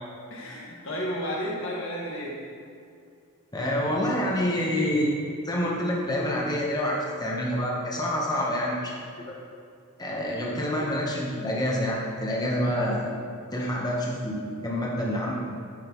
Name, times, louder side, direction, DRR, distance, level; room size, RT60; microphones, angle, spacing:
voice 1, 0.3-2.4, equal, 60° left, -4 dB, 1.7 m, -32 dB
voice 2, 3.5-8.9 10.0-13.1 13.5-15.4, equal, 20° left, -3 dB, 0.9 m, -27 dB
10.5 x 5.9 x 3.0 m, 2.4 s
head